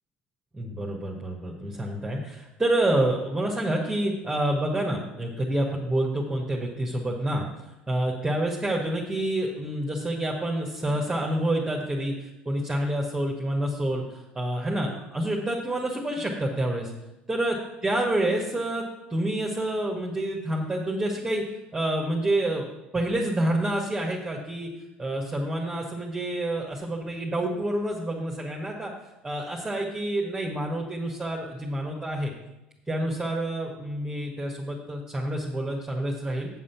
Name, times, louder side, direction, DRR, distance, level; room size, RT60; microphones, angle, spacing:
voice 1, 0.5-7.4 7.9-16.9 17.3-17.6 17.8-18.8 19.1-21.4 21.7-22.7 22.9-24.7 25.0-28.9 29.2-32.3 32.9-36.5, right 1 dB, 15° right, -2 dB, 1.7 m, -28 dB
7.8 x 7.3 x 5.9 m, 0.95 s
hypercardioid pair, 70°, 5 cm